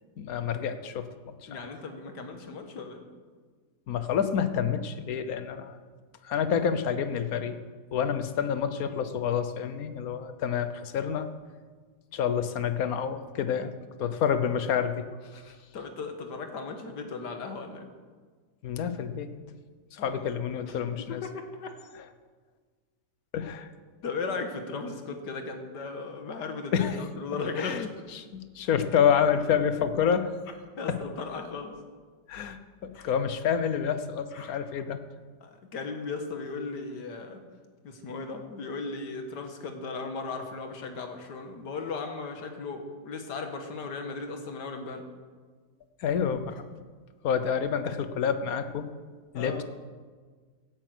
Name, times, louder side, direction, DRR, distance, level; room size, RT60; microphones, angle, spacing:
voice 1, 0.2-1.6 3.9-5.8 6.2-7.6 7.9-11.3 12.1-13.7 14.0-15.0 18.6-19.3 19.9-21.2 23.3-23.7 26.7-27.0 27.6-27.9 28.1-30.3 30.9-31.0 32.3-35.0 46.0-46.6 47.2-48.9 49.3-49.6, left 7 dB, 60° left, 11 dB, 1.3 m, -28 dB
voice 2, 1.5-3.0 6.5-6.7 15.3-17.9 20.0-20.2 20.7-21.8 24.0-27.9 30.8-31.8 32.9-33.1 34.3-34.6 35.4-37.4 37.8-45.1 49.3-49.6, left 4 dB, 80° left, 6 dB, 2.0 m, -37 dB
16.0 x 9.1 x 6.2 m, 1.5 s
omnidirectional pair, 1.8 m